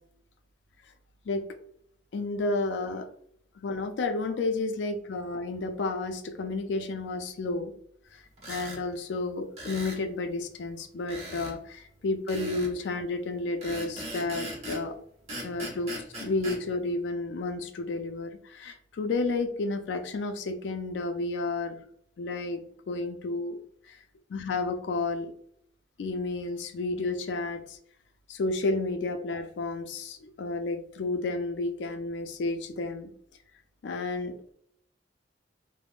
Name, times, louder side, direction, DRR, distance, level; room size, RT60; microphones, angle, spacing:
voice 1, 2.1-3.1 3.6-7.7 8.1-14.9 15.4-15.9 16.2-21.8 22.2-22.6 22.9-23.6 24.3-25.3 26.0-27.8 28.3-33.1 33.8-34.5, left 3 dB, 80° left, 8 dB, 0.4 m, -31 dB
sound 1, 8.4-8.8 9.6-10.0 11.1-11.6 12.3-12.7 13.6-14.9 15.3-16.6, equal, 40° right, 0.9 m, -38 dB
3.4 x 2.0 x 2.3 m, 0.66 s
head